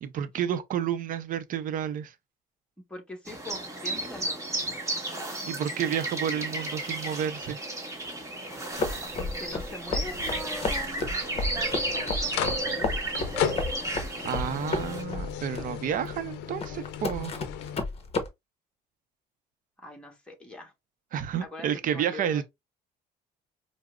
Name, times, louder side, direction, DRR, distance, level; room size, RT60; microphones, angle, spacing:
voice 1, 0.0-2.1 5.4-7.6 14.2-17.3 21.1-22.4, right 9 dB, 55° right, 0.5 m, -30 dB
voice 2, 2.9-4.4 9.2-11.1 11.5-13.3 19.8-20.7 21.4-22.4, left 1 dB, 5° left, 1.1 m, -42 dB
sound 1, 3.3-15.0, right 2 dB, 20° right, 1.1 m, -33 dB
sound 2, 8.1-17.8, left 9 dB, 90° left, 0.5 m, -37 dB
sound 3, 8.8-18.3, left 3 dB, 35° left, 0.8 m, -32 dB
4.7 x 2.0 x 2.3 m
cardioid pair, 110°, 17 cm